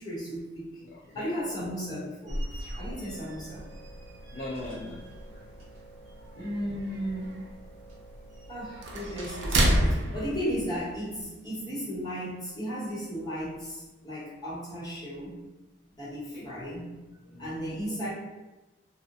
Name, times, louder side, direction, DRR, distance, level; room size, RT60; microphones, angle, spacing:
voice 1, 0.0-0.7 1.1-2.4 2.8-3.7 6.4-7.4 8.5-15.4 16.0-16.8 17.4-18.1, equal, 20° left, -9 dB, 0.8 m, -35 dB
voice 2, 0.8-1.3 4.3-5.4 16.3-16.5 17.2-17.6, left 1 dB, 40° left, -6 dB, 0.3 m, -40 dB
sound 1, 2.3-11.2, right 1 dB, 65° right, 0.4 m, -32 dB
sound 2, 2.5-10.0, right 2 dB, 80° left, 1.0 m, -52 dB
sound 3, 2.5-11.5, right 1 dB, 35° right, 0.8 m, -49 dB
2.6 x 2.0 x 2.5 m, 1.1 s
head